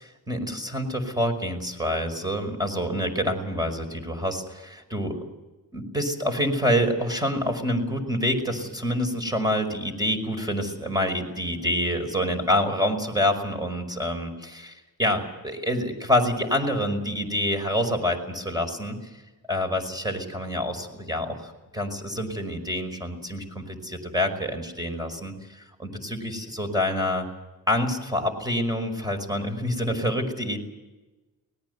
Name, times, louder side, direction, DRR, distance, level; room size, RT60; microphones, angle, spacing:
voice 1, 0.0-5.2 5.7-19.1 19.5-27.3 27.7-30.6, left 1 dB, 10° right, 5 dB, 5.3 m, -27 dB
24.0 x 19.0 x 8.1 m, 1.1 s
cardioid pair, 80°, 36 cm